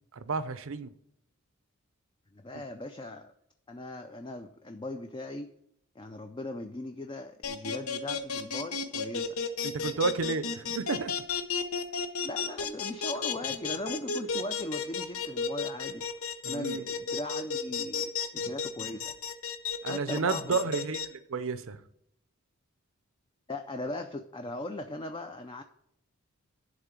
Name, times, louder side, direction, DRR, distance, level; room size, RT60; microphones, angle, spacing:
voice 1, 0.1-0.9 9.6-11.1 16.4-16.8 19.8-21.8, right 4 dB, 65° right, 0.6 m, -31 dB
voice 2, 2.3-3.3 3.7-5.5 6.0-9.4 12.2-16.1 16.5-19.1 19.9-20.6 23.5-25.6, left 2 dB, 20° left, 0.4 m, -39 dB
sound 1, 7.4-21.1, left 6 dB, 80° left, 0.9 m, -32 dB
11.0 x 3.7 x 7.2 m
head